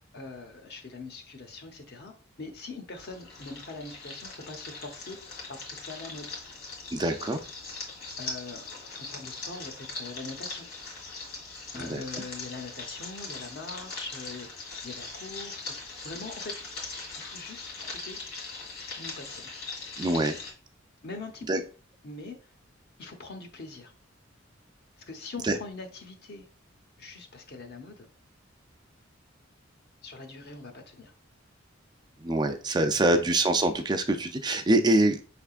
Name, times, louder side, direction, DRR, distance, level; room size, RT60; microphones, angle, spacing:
voice 1, 0.1-2.1 2.4-5.2 5.5-6.3 7.2-7.3 8.2-10.7 11.7-16.5 17.2-18.2 18.8-19.5 21.0-21.6 22.0-22.4 23.0-23.9 25.1-26.4 27.0-28.1 30.0-31.1 32.8-33.0, left 3 dB, 55° left, 5 dB, 0.9 m, -42 dB
sound 1, 3.0-20.5, left 3 dB, 85° left, 1.8 m, -41 dB
voice 2, 6.9-7.4 11.7-12.0 20.0-20.4 21.5-21.6 25.4-25.6 32.2-35.2, right 2 dB, 20° right, 7 dB, 0.4 m, -24 dB
5.6 x 3.5 x 2.4 m, 0.37 s
head